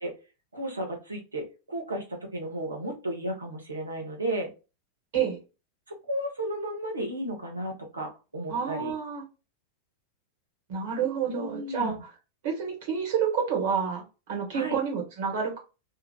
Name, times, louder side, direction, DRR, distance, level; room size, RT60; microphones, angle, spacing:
voice 1, 0.5-4.5 5.9-8.9 11.3-12.0 14.5-14.8, right 1 dB, 80° right, 1 dB, 0.9 m, -34 dB
voice 2, 8.5-9.2 10.7-11.9 12.4-14.0 14.3-15.6, right 7 dB, 55° right, 0 dB, 1.3 m, -29 dB
2.9 x 2.4 x 2.2 m, 0.30 s
figure-of-eight pair, 90°, 0 cm